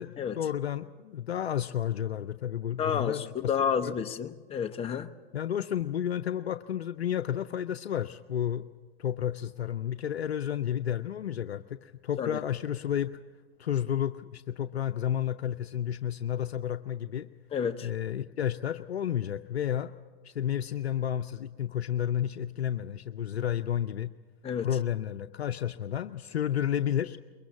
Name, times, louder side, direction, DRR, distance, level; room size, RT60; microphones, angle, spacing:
voice 1, 0.0-3.5 3.8-3.9 5.3-8.7 9.0-13.2 13.6-17.3 17.8-19.9 20.2-24.1 24.6-27.2, left 10 dB, 85° left, 9 dB, 0.6 m, -31 dB
voice 2, 2.8-5.1 12.2-12.4 17.5-17.9 24.4-24.7, left 7 dB, 20° left, 7 dB, 0.8 m, -30 dB
22.5 x 22.0 x 7.2 m, 1.4 s
hypercardioid pair, 105°, 31 cm